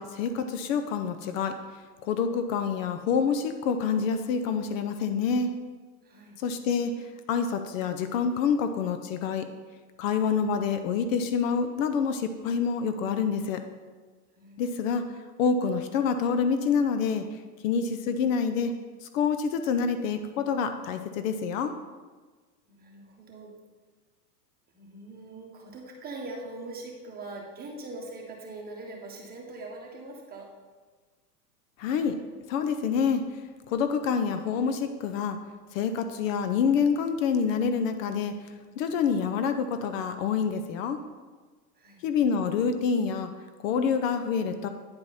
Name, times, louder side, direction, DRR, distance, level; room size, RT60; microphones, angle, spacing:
voice 1, 0.0-1.6 2.0-5.5 6.4-9.5 10.0-13.6 14.6-15.0 15.4-17.4 17.6-18.7 19.0-21.7 31.8-32.2 32.5-33.2 33.7-35.4 35.7-38.3 38.8-41.0 42.0-43.3 43.6-44.7, left 6 dB, 55° left, 9 dB, 0.7 m, -27 dB
voice 2, 6.0-6.4 14.3-14.6 22.7-23.5 24.7-30.5 41.7-42.0, right 2 dB, 20° right, -1 dB, 1.4 m, -42 dB
9.6 x 4.7 x 4.2 m, 1.4 s
hypercardioid pair, 125°, 46 cm